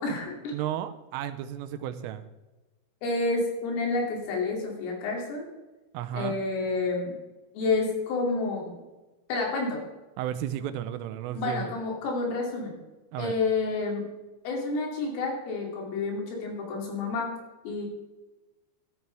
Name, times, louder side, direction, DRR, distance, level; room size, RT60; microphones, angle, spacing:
voice 1, 0.0-0.5 3.0-5.5 6.1-7.1 7.6-8.8 9.3-9.8 11.4-12.8 13.2-14.0 14.5-17.3 17.7-17.9, left 3 dB, 80° left, 0 dB, 5.3 m, -29 dB
voice 2, 0.5-2.2 5.9-6.4 10.2-11.7 13.1-13.3, right 11 dB, 85° right, 10 dB, 3.2 m, -33 dB
14.0 x 12.5 x 3.4 m, 1.1 s
omnidirectional pair, 5.8 m